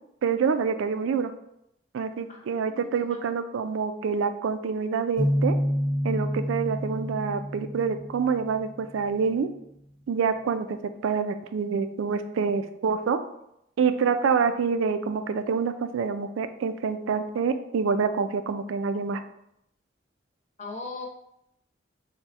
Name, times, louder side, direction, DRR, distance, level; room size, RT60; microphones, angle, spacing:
voice 1, 0.2-1.3 1.9-5.6 6.0-9.5 10.1-10.8 11.0-13.2 13.8-19.2, right 5 dB, 75° right, 10 dB, 0.3 m, -26 dB
voice 2, 2.3-3.2 20.6-21.1, left 3 dB, 35° left, -1 dB, 0.7 m, -40 dB
sound 1, 5.2-8.9, equal, 75° left, 0.9 m, -28 dB
3.5 x 2.1 x 4.0 m, 0.78 s
head